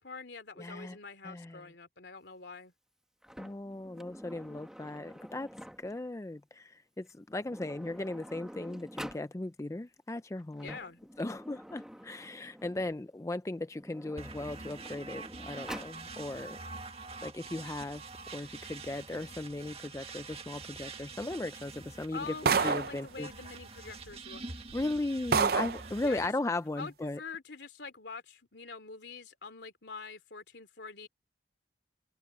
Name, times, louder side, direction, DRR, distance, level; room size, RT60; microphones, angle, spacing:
voice 1, 0.0-2.7 10.6-11.0 22.1-24.6 26.0-26.3 26.8-31.1, left 4 dB, 70° left, 3.1 m, -45 dB
voice 2, 0.6-1.0 1.2-1.6 3.4-5.5 5.8-10.8 11.2-16.6 17.2-18.0 18.3-22.3 22.6-23.3 24.7-27.2, left 2 dB, 15° left, 0.4 m, -37 dB
Sliding door, 3.2-6.1 7.1-7.2 7.4-9.3 10.4-12.9 13.7-16.0, equal, 5° right, 1.6 m, -48 dB
sound 1, 14.2-26.3, right 3 dB, 35° right, 1.6 m, -46 dB
sound 2, 22.5-23.0 24.1-24.2 24.7-24.8 25.3-25.9, right 5 dB, 55° right, 0.5 m, -27 dB
head